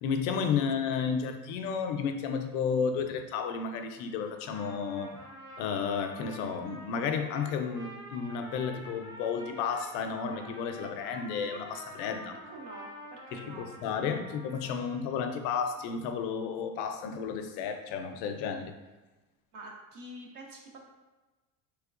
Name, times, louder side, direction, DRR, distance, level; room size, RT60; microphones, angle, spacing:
voice 1, 0.0-5.1 5.6-12.3 13.3-18.7, left 6 dB, 70° left, 6 dB, 0.5 m, -32 dB
Trumpet, 4.3-15.2, equal, 10° right, 0.5 m, -47 dB
voice 2, 12.5-14.2 14.8-14.9 19.5-20.8, right 1 dB, 45° right, 0 dB, 0.7 m, -48 dB
3.6 x 3.2 x 2.4 m, 1.2 s
cardioid pair, 150°, 41 cm